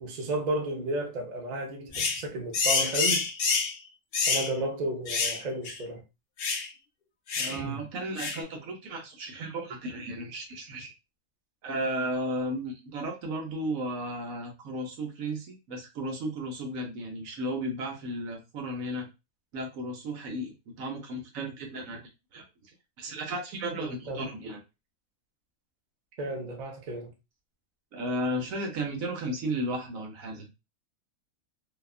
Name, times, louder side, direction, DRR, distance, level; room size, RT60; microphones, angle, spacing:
voice 1, 0.0-3.2 4.3-6.0 7.5-7.8 24.1-24.3 26.2-27.1, right 1 dB, 50° right, 0.5 m, -33 dB
sound 1, 1.9-2.2 2.5-3.8 4.1-4.5 5.1-5.4 5.7-5.8 6.4-6.7 7.3-7.6 8.2-8.4, left 5 dB, 90° left, 0.4 m, -27 dB
voice 2, 7.4-10.9 11.6-19.1 19.5-22.0 22.3-22.4 23.0-24.6 27.9-30.5, right 1 dB, 70° right, 1.1 m, -34 dB
2.7 x 2.2 x 2.3 m
omnidirectional pair, 1.5 m